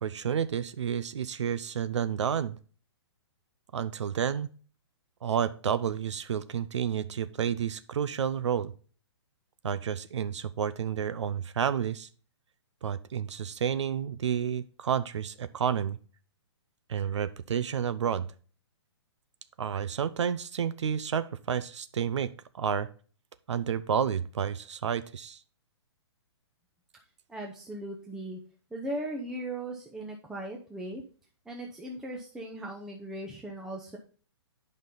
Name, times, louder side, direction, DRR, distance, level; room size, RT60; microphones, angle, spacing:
voice 1, 0.0-2.6 3.7-4.5 5.2-8.7 9.6-12.1 12.8-16.0 16.9-18.3 19.6-22.3 22.5-22.9 23.5-25.4, right 8 dB, 80° right, 14 dB, 0.6 m, -30 dB
voice 2, 27.3-28.4 28.7-31.0 31.5-34.0, right 1 dB, 5° right, 0 dB, 0.6 m, -38 dB
8.9 x 5.4 x 3.9 m, 0.40 s
hypercardioid pair, 160°, 15 cm